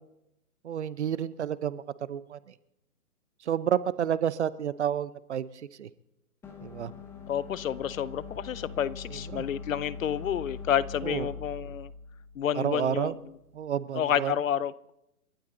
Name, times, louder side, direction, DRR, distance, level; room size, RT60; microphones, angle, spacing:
voice 1, 0.6-1.8 2.1-2.4 3.4-5.5 5.8-5.9 6.6-6.9 9.1-9.4 11.0-11.3 12.6-13.2 13.5-14.3, right 9 dB, 45° right, 17 dB, 0.8 m, -30 dB
sound 1, 6.4-13.5, left 5 dB, 5° left, 1.0 m, -43 dB
voice 2, 7.3-11.9 12.4-13.1 13.9-14.7, left 9 dB, 60° left, 20 dB, 0.7 m, -29 dB
29.5 x 12.0 x 3.9 m, 0.87 s
hypercardioid pair, 155°, 46 cm